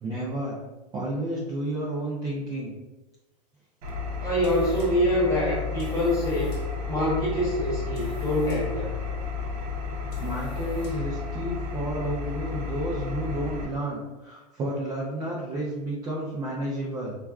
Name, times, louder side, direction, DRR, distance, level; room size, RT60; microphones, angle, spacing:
voice 1, 0.0-0.6 0.9-2.7 10.2-17.2, right 1 dB, 15° right, -5 dB, 0.3 m, -31 dB
Engine, 3.8-13.7, left 5 dB, 65° right, 0.7 m, -32 dB
sound 1, 4.2-11.2, left 2 dB, 40° left, 1.1 m, -48 dB
voice 2, 4.2-6.6 6.9-9.0, equal, 15° left, -7 dB, 1.0 m, -25 dB
3.3 x 2.4 x 2.3 m, 1.1 s
supercardioid pair, 145°, 21 cm